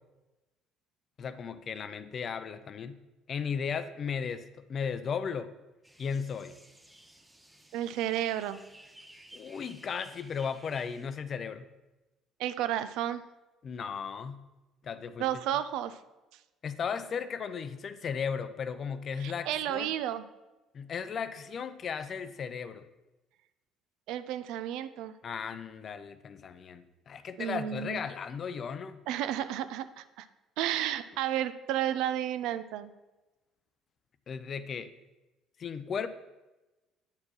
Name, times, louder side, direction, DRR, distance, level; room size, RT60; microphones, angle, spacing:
voice 1, 1.2-3.0 3.3-5.5 6.0-6.5 9.3-11.7 13.6-14.4 14.8-15.3 16.6-19.9 20.7-22.9 25.2-29.0 34.3-34.9 35.6-36.1, left 6 dB, 45° left, 12 dB, 0.5 m, -36 dB
sound 1, 5.8-11.1, right 1 dB, 10° right, 0.9 m, -55 dB
voice 2, 7.7-8.6 12.4-13.2 15.2-16.0 19.2-20.2 24.1-25.1 27.4-28.0 29.1-30.3 30.6-32.9, right 11 dB, 65° right, 13 dB, 0.4 m, -32 dB
9.5 x 4.3 x 4.5 m, 1.1 s
figure-of-eight pair, 55°, 0 cm